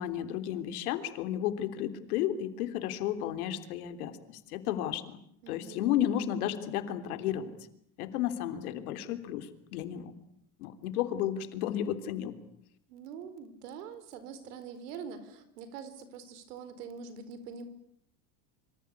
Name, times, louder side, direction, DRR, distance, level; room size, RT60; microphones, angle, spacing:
voice 1, 0.0-5.2 5.5-7.5 8.0-10.1 10.6-12.3, left 11 dB, 75° left, 10 dB, 3.5 m, -33 dB
voice 2, 5.4-6.0 12.9-17.7, right 6 dB, 85° right, 12 dB, 4.7 m, -44 dB
26.5 x 25.5 x 8.4 m, 0.71 s
cardioid pair, 170°, 45 cm